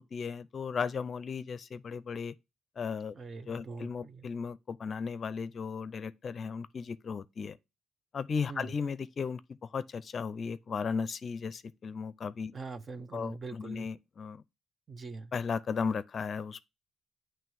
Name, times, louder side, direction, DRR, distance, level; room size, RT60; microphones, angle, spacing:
voice 1, 0.0-2.3 2.8-3.1 3.5-7.6 8.1-9.4 9.7-12.5 13.1-14.4 15.3-16.6, left 5 dB, 45° left, 0.5 m, -35 dB
voice 2, 3.1-4.3 8.5-8.7 12.5-13.9 14.9-15.3, right 4 dB, 40° right, 0.8 m, -43 dB
8.9 x 3.2 x 4.7 m
cardioid pair, 90°, 0 cm